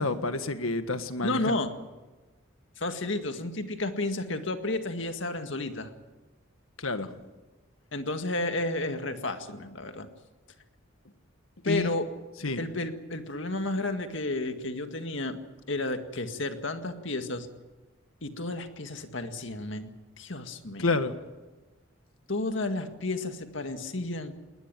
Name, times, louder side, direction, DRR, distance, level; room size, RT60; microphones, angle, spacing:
voice 1, 0.0-1.6 6.8-7.1 11.7-11.9 12.4-12.6 20.8-21.1, left 2 dB, 85° left, 9 dB, 1.6 m, -29 dB
voice 2, 1.2-1.7 2.8-5.9 7.9-10.1 11.6-12.1 12.6-15.4 15.7-17.5 18.2-19.9 20.2-20.9 22.3-24.3, left 2 dB, 65° left, 7 dB, 2.0 m, -32 dB
20.5 x 20.0 x 9.2 m, 1.2 s
head